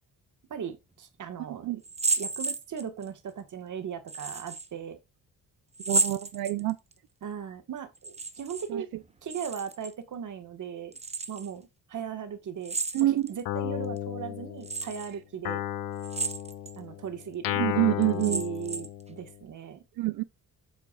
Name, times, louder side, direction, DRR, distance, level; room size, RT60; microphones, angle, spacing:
voice 1, 0.5-1.8 2.2-5.0 7.2-8.9 9.2-10.9 11.3-12.8 13.0-15.6 16.8-19.8, right 8 dB, 55° right, 1.5 m, -38 dB
voice 2, 1.4-1.8 5.9-6.8 8.7-8.8 12.9-13.3 17.6-18.4 20.0-20.2, right 16 dB, 80° right, 0.6 m, -27 dB
sound 1, 1.8-3.1 4.1-4.7 5.7-6.9 7.9-8.7 8.9-9.9 10.9-11.5 12.6-13.4 14.0-14.1 14.6-15.1 16.0-16.7 17.2-17.3 18.0-19.0, right 3 dB, 20° right, 0.9 m, -32 dB
Guitar, 13.4-15.0 15.4-19.3, left 11 dB, 70° left, 0.8 m, -34 dB
8.1 x 7.7 x 2.4 m
cardioid pair, 110°, 35 cm